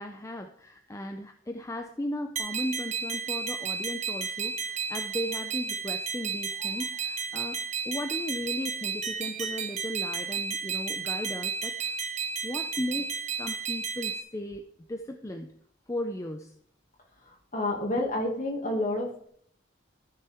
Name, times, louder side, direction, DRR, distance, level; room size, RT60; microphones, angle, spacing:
voice 1, 0.0-12.0 12.4-14.6 14.9-15.5 15.9-16.6 18.0-18.1, left 1 dB, 15° left, 5 dB, 0.5 m, -36 dB
sound 1, 2.4-14.2, right 5 dB, 35° right, 0.9 m, -33 dB
voice 2, 17.5-19.3, left 1 dB, 40° left, 0 dB, 2.1 m, -29 dB
14.0 x 6.5 x 3.5 m, 0.63 s
head